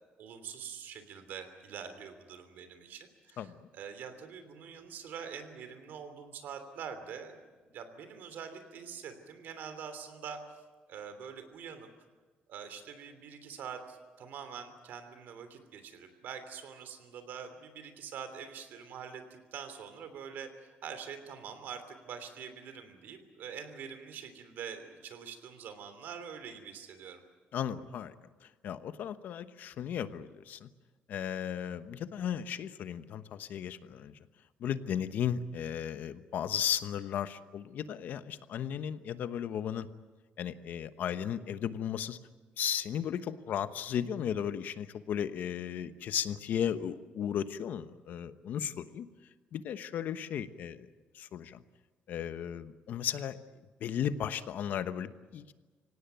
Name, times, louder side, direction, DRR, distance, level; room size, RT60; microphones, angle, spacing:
voice 1, 0.2-7.3 7.7-10.4 10.9-11.9 12.5-27.2, right 7 dB, 70° right, 9 dB, 3.2 m, -45 dB
voice 2, 27.5-28.1 28.4-30.7 31.1-34.1 34.6-39.9 40.4-42.2 42.6-49.1 49.5-50.9 51.1-51.6 52.1-53.4 53.8-55.5, left 9 dB, 60° left, 12 dB, 1.1 m, -35 dB
25.5 x 17.5 x 9.3 m, 1.3 s
cardioid pair, 155°, 3 cm